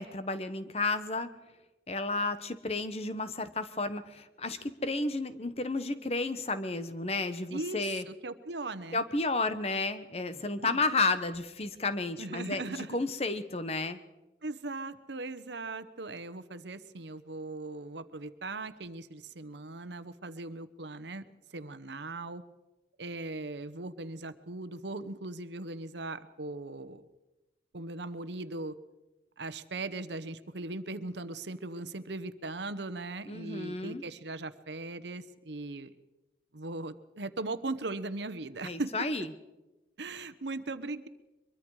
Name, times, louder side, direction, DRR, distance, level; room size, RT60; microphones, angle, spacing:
voice 1, 0.0-1.3 1.9-8.0 8.9-14.0 33.3-34.0 38.6-39.3, left 3 dB, 35° left, 11 dB, 1.1 m, -32 dB
voice 2, 7.5-9.0 10.6-10.8 12.2-13.0 14.4-22.4 23.0-27.1 27.7-28.8 29.4-35.9 36.5-39.1 40.0-41.1, right 2 dB, 80° right, 14 dB, 1.0 m, -39 dB
23.5 x 22.5 x 4.9 m, 1.1 s
head